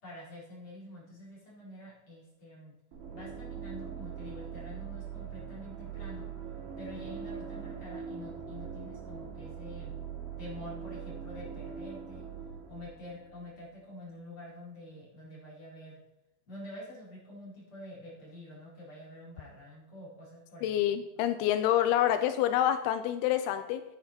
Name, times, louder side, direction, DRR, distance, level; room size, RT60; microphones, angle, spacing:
voice 1, 0.0-2.7 3.1-6.3 6.8-10.0 10.4-12.3 12.7-16.0 16.5-20.8, left 1 dB, 30° left, -6 dB, 4.9 m, -47 dB
sound 1, 2.9-13.7, right 7 dB, 80° right, 5.1 m, -42 dB
voice 2, 20.6-23.8, left 11 dB, 90° left, 10 dB, 2.2 m, -27 dB
13.0 x 9.4 x 4.4 m, 0.95 s
omnidirectional pair, 5.2 m